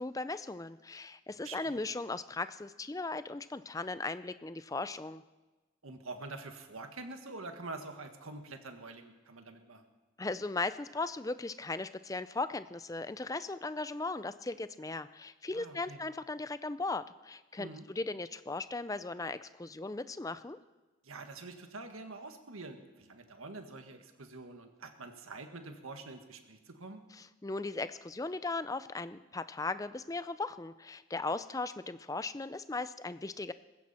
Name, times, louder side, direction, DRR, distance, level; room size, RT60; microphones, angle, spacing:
voice 1, 0.0-5.2 10.2-20.6 27.4-33.5, left 3 dB, 15° left, 13 dB, 0.4 m, -37 dB
voice 2, 1.4-1.8 5.8-9.9 15.5-16.0 17.6-17.9 21.0-27.0, right 3 dB, 85° right, 6 dB, 1.7 m, -46 dB
20.0 x 16.0 x 4.4 m, 1.2 s
head